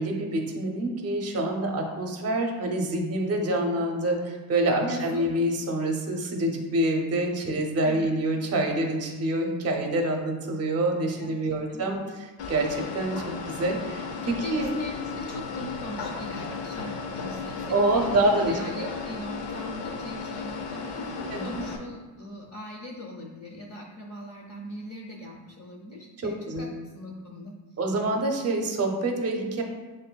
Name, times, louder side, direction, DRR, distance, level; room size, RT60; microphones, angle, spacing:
voice 1, 0.0-12.0 12.5-14.8 17.7-18.9 21.3-21.6 26.2-26.7 27.8-29.6, right 1 dB, 35° right, 3 dB, 0.7 m, -26 dB
voice 2, 4.8-5.3 7.8-8.1 11.2-11.4 11.7-11.9 14.3-27.6, left 1 dB, 35° left, -1 dB, 0.6 m, -40 dB
sound 1, 12.4-21.8, left 5 dB, 75° left, 0.8 m, -35 dB
7.5 x 2.6 x 2.2 m, 1.3 s
cardioid pair, 160°, 44 cm